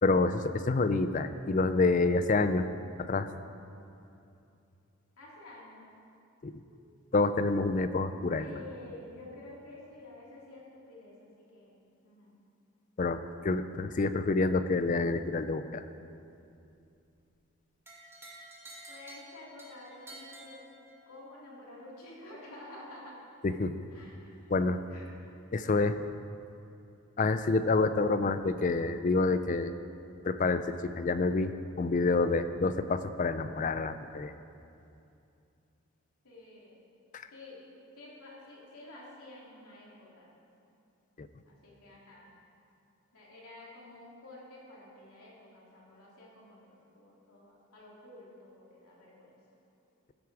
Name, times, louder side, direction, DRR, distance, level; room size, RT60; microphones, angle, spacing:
voice 1, 0.0-2.7 3.0-3.3 6.4-6.5 7.1-8.5 13.0-15.8 23.4-23.7 24.5-24.8 25.5-26.0 27.2-29.7 30.2-34.3 37.1-37.2 41.2-41.3, left 3 dB, 35° left, 11 dB, 0.4 m, -28 dB
voice 2, 5.2-5.9 6.6-7.0 8.4-12.3 18.9-20.6 21.1-23.2 23.9-24.5 24.9-25.3 25.6-25.8 36.2-36.8 37.3-40.3 41.5-42.3 43.1-49.4, left 2 dB, 85° left, -4 dB, 2.8 m, -50 dB
sound 1, 17.9-21.2, right 1 dB, 10° right, 1.5 m, -50 dB
14.5 x 8.3 x 4.7 m, 2.6 s
head